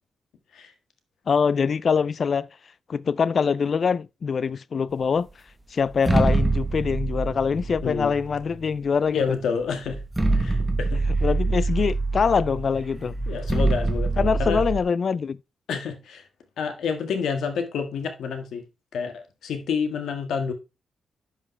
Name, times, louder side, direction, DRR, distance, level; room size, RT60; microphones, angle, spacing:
voice 1, 1.3-2.5 2.9-5.3 5.7-9.2 11.2-13.2 14.2-15.4, left 6 dB, 45° left, 0.3 m, -24 dB
sound 1, 5.9-8.7 9.4-9.5 9.9-14.8, right 2 dB, 10° right, 1.0 m, -25 dB
voice 2, 7.8-8.1 9.1-10.0 10.3-11.0 13.3-14.6 15.7-16.3 16.6-18.6 18.9-20.5, left 6 dB, 85° left, 1.6 m, -29 dB
11.0 x 5.5 x 3.2 m
wide cardioid pair, 130°, 0 cm